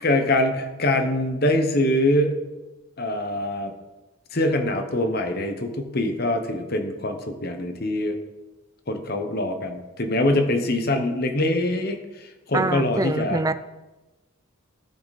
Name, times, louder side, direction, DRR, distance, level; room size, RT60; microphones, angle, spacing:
voice 1, 0.0-2.3 3.0-3.7 4.3-8.2 8.9-13.4, left 1 dB, 45° left, 6 dB, 1.1 m, -24 dB
voice 2, 12.5-13.5, right 3 dB, 15° right, 12 dB, 0.3 m, -24 dB
14.0 x 5.7 x 4.2 m, 1.1 s
head